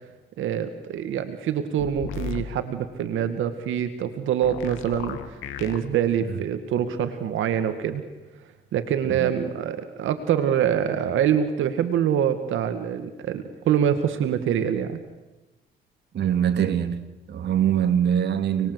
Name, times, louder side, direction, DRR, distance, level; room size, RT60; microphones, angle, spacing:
voice 1, 0.4-8.0 8.7-15.0, right 9 dB, 80° right, 2.0 m, -25 dB
sound 1, 1.8-2.4 4.4-5.8, left 8 dB, 85° left, 2.4 m, -34 dB
voice 2, 16.1-17.0 17.3-18.7, right 9 dB, 60° right, 2.3 m, -23 dB
30.0 x 21.0 x 8.2 m
cardioid pair, 90°, 20 cm